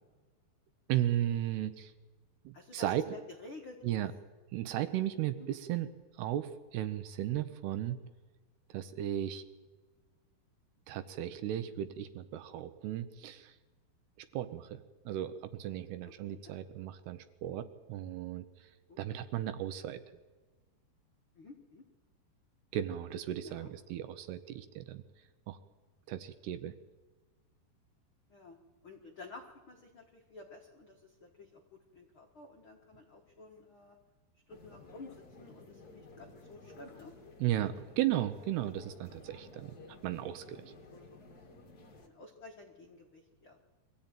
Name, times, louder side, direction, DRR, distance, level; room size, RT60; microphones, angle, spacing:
voice 1, 0.9-1.9 2.5-3.1 3.8-4.1 4.5-5.9 6.2-8.0 8.7-9.4 10.9-13.5 14.3-15.3 15.6-18.5 19.0-20.0 22.7-25.0 25.5-25.6 26.1-26.7 37.4-39.8 40.0-40.6, right 12 dB, 75° right, 11 dB, 2.6 m, -35 dB
voice 2, 2.5-3.8 5.4-5.5 16.2-16.5 18.9-19.0 21.3-21.8 23.4-23.7 24.3-24.4 28.3-28.6 28.8-31.6 31.9-34.0 34.5-37.1 38.8-38.9 39.6-39.7 40.9-41.2 42.0-43.7, left 3 dB, 65° left, 0 dB, 1.3 m, -52 dB
sound 1, 34.5-42.1, left 3 dB, 40° left, 1.3 m, -54 dB
23.5 x 14.5 x 9.0 m, 1.3 s
omnidirectional pair, 5.1 m